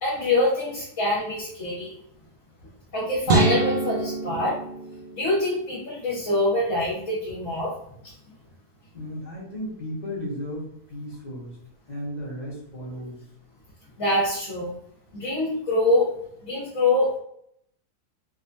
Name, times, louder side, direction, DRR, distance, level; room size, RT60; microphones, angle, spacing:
voice 1, 0.0-1.9 2.9-4.6 5.1-7.7 8.0-8.1 14.0-14.7 15.1-16.1 16.4-17.2, left 1 dB, 50° left, -8 dB, 1.6 m, -24 dB
sound 1, 3.3-5.6, right 2 dB, 55° right, 0.7 m, -25 dB
voice 2, 8.9-11.6 11.9-13.2, equal, 30° left, -6 dB, 1.5 m, -35 dB
3.7 x 3.1 x 2.5 m, 0.72 s
omnidirectional pair, 1.6 m